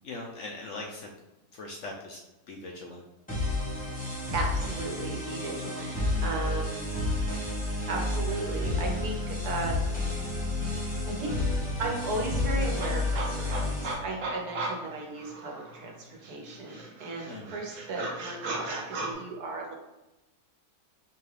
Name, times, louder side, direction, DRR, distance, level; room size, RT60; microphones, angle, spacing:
voice 1, 0.0-1.1 1.5-2.2 2.5-3.0 17.3-17.6, left 2 dB, 65° left, 0 dB, 0.7 m, -40 dB
sound 1, 3.3-13.9, left 2 dB, 5° left, 0.8 m, -30 dB
voice 2, 4.3-5.9 6.2-6.9 7.9-10.0 11.1-11.4 11.8-19.7, right 2 dB, 80° right, 0 dB, 1.4 m, -35 dB
sound 2, 10.9-11.0 11.3-15.9 16.2-19.1, right 2 dB, 60° right, 1.0 m, -37 dB
4.8 x 2.3 x 3.2 m, 0.98 s
omnidirectional pair, 1.6 m